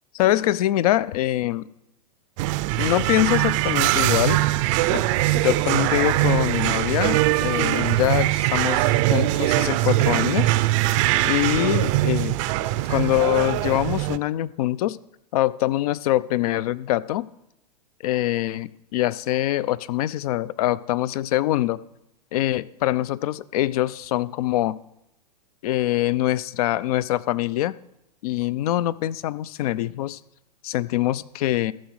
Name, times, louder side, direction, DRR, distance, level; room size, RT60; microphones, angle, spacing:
voice 1, 0.1-1.7 2.8-4.4 4.9-5.0 5.3-10.5 11.2-12.4 12.9-15.0 15.3-17.3 18.0-21.8 22.3-24.8 25.6-27.8 28.2-30.2 30.6-31.7, left 14 dB, 60° left, 19 dB, 0.5 m, -24 dB
sound 1, 2.4-14.2, right 17 dB, 50° right, 0.5 m, -22 dB
14.5 x 6.0 x 6.3 m, 0.83 s
hypercardioid pair, 115°, 21 cm